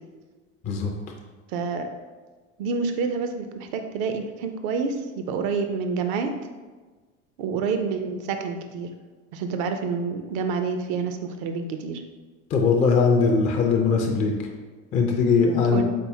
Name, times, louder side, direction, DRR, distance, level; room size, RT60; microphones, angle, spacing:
voice 1, 1.5-1.9 2.6-6.3 7.4-8.9 9.3-12.0 15.7-15.8, right 5 dB, 45° right, 6 dB, 0.4 m, -28 dB
voice 2, 12.5-14.5 14.9-15.8, left 5 dB, 20° left, 2 dB, 0.4 m, -20 dB
3.9 x 3.6 x 2.7 m, 1.3 s
figure-of-eight pair, 70°, 40 cm